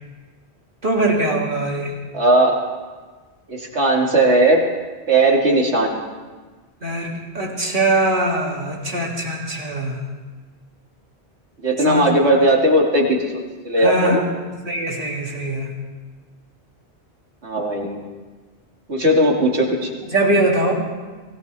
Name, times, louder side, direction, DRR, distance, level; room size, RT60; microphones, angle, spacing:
voice 1, 0.8-1.9 6.8-10.0 11.9-12.1 13.8-14.2 14.6-15.7 20.1-20.7, right 1 dB, 50° right, -1 dB, 2.8 m, -21 dB
voice 2, 2.1-2.6 3.5-4.6 5.1-6.0 11.6-13.3 13.6-14.2 17.4-18.0 18.9-19.9, right 1 dB, 90° right, -1 dB, 2.6 m, -17 dB
23.5 x 17.0 x 3.4 m, 1.4 s
omnidirectional pair, 1.1 m